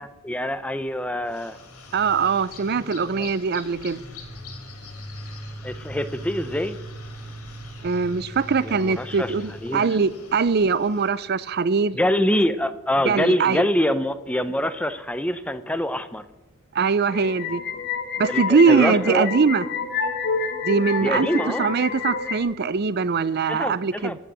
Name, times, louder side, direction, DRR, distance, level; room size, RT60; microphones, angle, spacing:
voice 1, 0.0-1.6 3.1-3.3 5.6-6.8 8.6-9.9 11.9-16.3 18.3-19.3 21.0-21.7 23.5-24.2, left 1 dB, 5° left, 0.5 m, -25 dB
sound 1, 1.3-11.1, equal, 85° left, 2.7 m, -40 dB
voice 2, 1.9-4.0 7.8-12.0 13.1-13.6 16.7-17.6 18.2-19.6 20.6-21.3 21.6-24.1, right 5 dB, 45° right, 0.5 m, -22 dB
sound 2, 17.1-22.4, left 5 dB, 50° left, 1.6 m, -28 dB
14.5 x 6.3 x 8.1 m
head